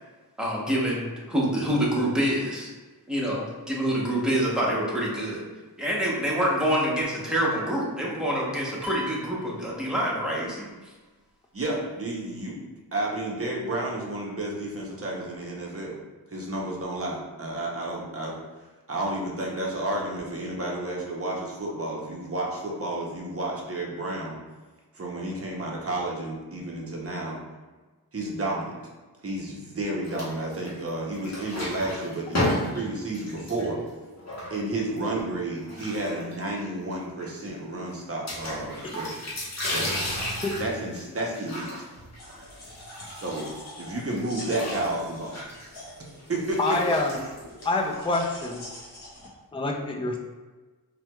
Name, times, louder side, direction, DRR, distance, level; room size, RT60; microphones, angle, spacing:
voice 1, 0.4-2.7 3.1-5.4 5.8-10.9, equal, ahead, -5 dB, 0.8 m, -26 dB
sound 1, 8.8-10.5, left 2 dB, 75° right, 0.8 m, -40 dB
voice 2, 11.5-12.6 12.9-16.0 16.3-18.3 18.9-24.4 24.9-27.4 28.1-28.7 29.2-33.8 34.5-39.1 39.7-39.9 40.6-41.7 43.2-43.5 43.8-45.3 46.3-46.8, right 1 dB, 35° right, -2 dB, 0.6 m, -31 dB
sound 2, 30.0-30.9 31.1-35.0 35.6-36.6 36.9-37.0 37.2-37.3 38.3-43.7 44.1-48.1, left 1 dB, 45° left, 1.0 m, -34 dB
sound 3, 42.2-49.3, left 1 dB, 75° left, 1.0 m, -45 dB
voice 3, 46.6-47.2 47.6-48.6 49.5-50.2, left 2 dB, 15° left, 2 dB, 0.3 m, -26 dB
4.4 x 2.2 x 2.2 m, 1.3 s
wide cardioid pair, 100°, 39 cm